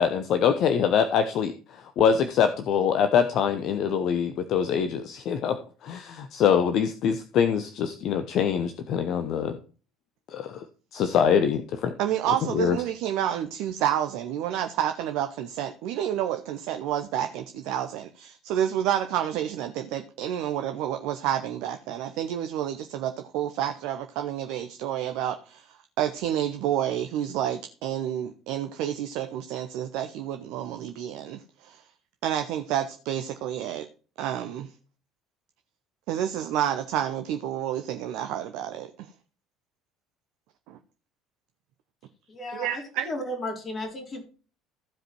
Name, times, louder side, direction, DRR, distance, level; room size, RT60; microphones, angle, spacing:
voice 1, 0.0-9.5 10.3-10.6 10.9-11.9 12.5-12.8, left 7 dB, 50° left, 9 dB, 0.8 m, -24 dB
voice 2, 12.0-31.8 32.2-33.9 34.2-34.7 36.1-38.9 40.7-40.8 42.5-43.1, right 10 dB, 60° right, 7 dB, 0.7 m, -29 dB
voice 3, 42.3-44.2, left 1 dB, 35° left, 2 dB, 3.8 m, -34 dB
15.0 x 5.1 x 4.6 m, 0.37 s
figure-of-eight pair, 60°, 0 cm